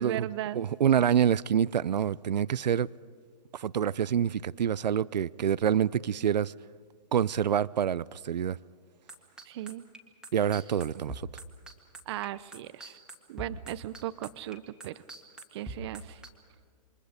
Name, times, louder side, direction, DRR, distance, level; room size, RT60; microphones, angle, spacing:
voice 1, 0.0-0.6 9.5-9.8 12.1-13.0 13.3-15.0 15.5-16.2, right 13 dB, 40° right, 0.7 m, -37 dB
voice 2, 0.5-2.9 3.5-6.5 7.1-8.6 10.3-11.3, right 9 dB, 80° right, 0.6 m, -26 dB
sound 1, 9.1-16.3, right 2 dB, 5° right, 1.8 m, -43 dB
28.5 x 24.5 x 5.1 m
hypercardioid pair, 145°, 21 cm